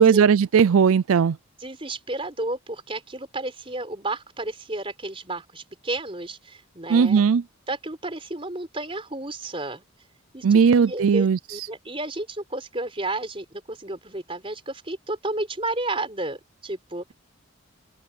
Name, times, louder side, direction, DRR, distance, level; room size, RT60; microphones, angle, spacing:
voice 1, 0.0-1.4 6.9-7.4 10.4-11.7, right 6 dB, 80° right, 0.4 m, -18 dB
voice 2, 1.6-7.2 7.7-9.8 10.3-17.1, right 2 dB, 25° right, 4.4 m, -32 dB
open air
head